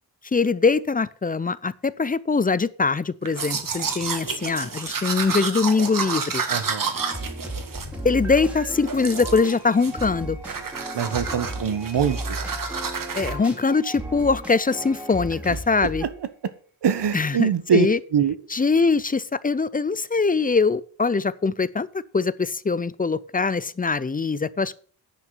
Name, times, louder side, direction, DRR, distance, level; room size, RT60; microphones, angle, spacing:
voice 1, 0.3-6.4 8.0-10.4 13.1-16.1 17.1-18.0 18.5-21.9 22.1-24.8, left 4 dB, 20° left, 18 dB, 0.4 m, -22 dB
Domestic sounds home sounds, 3.2-8.5 8.9-9.5 9.8-10.2 10.4-13.3, right 5 dB, 50° right, 1.8 m, -30 dB
voice 2, 6.5-6.9 10.9-12.4 15.8-15.9 16.8-17.9 18.1-18.3, right 7 dB, 70° right, 12 dB, 1.4 m, -23 dB
sound 1, 7.0-16.2, right 1 dB, 5° right, 2.7 m, -35 dB
10.5 x 5.9 x 8.0 m, 0.43 s
wide cardioid pair, 155°, 43 cm